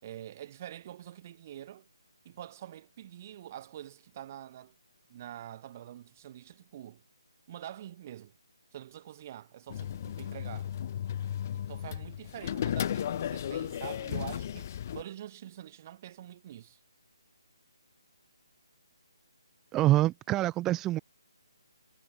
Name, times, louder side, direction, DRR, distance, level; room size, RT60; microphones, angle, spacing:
voice 1, 0.0-1.9 2.2-4.7 5.1-7.0 7.5-8.3 8.7-10.7 11.5-16.8, right 12 dB, 30° right, 3.3 m, -46 dB
sound 1, 9.7-15.0, left 10 dB, 35° left, 0.5 m, -35 dB
voice 2, 19.7-21.0, right 15 dB, 15° right, 0.7 m, -25 dB
figure-of-eight pair, 145°, 3 cm